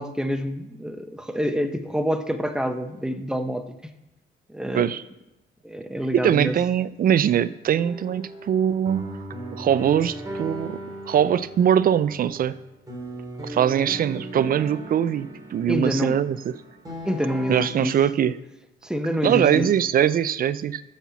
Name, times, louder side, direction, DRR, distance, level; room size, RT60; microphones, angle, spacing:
voice 1, 0.0-3.8 4.5-4.9 5.6-6.6 15.6-16.2 17.0-17.9 18.8-19.7, equal, 5° right, 7 dB, 0.8 m, -27 dB
voice 2, 6.1-9.1 9.5-10.8 11.1-12.6 13.4-16.6 17.5-18.4 19.2-20.8, right 9 dB, 45° right, 17 dB, 0.4 m, -22 dB
sound 1, 7.8-17.7, right 1 dB, 20° right, 3.0 m, -37 dB
7.2 x 5.7 x 7.0 m, 0.98 s
cardioid pair, 90°, 20 cm